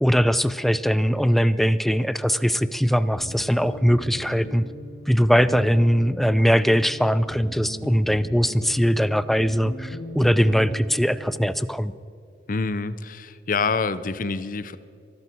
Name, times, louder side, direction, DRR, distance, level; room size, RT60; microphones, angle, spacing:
voice 1, 0.0-4.6 5.1-11.9, equal, ahead, 15 dB, 0.4 m, -21 dB
sound 1, 3.1-11.6, left 1 dB, 70° left, 1.5 m, -38 dB
voice 2, 12.5-14.8, left 4 dB, 50° left, 14 dB, 0.7 m, -26 dB
23.5 x 12.0 x 4.6 m, 2.5 s
head